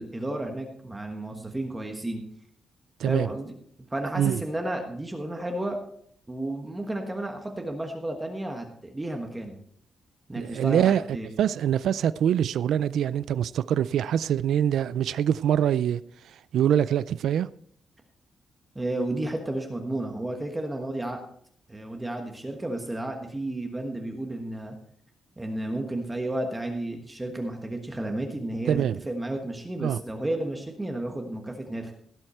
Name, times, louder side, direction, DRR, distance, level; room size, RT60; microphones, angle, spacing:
voice 1, 0.0-2.2 3.0-3.5 3.9-5.8 6.3-9.6 10.3-11.3 18.7-21.2 21.7-24.7 25.4-31.9, right 1 dB, 10° right, 1.3 m, -32 dB
voice 2, 10.3-11.0 11.4-17.5 28.7-29.0 29.8-30.0, right 10 dB, 85° right, 0.4 m, -24 dB
17.0 x 7.8 x 4.4 m
wide cardioid pair, 165°, 0 cm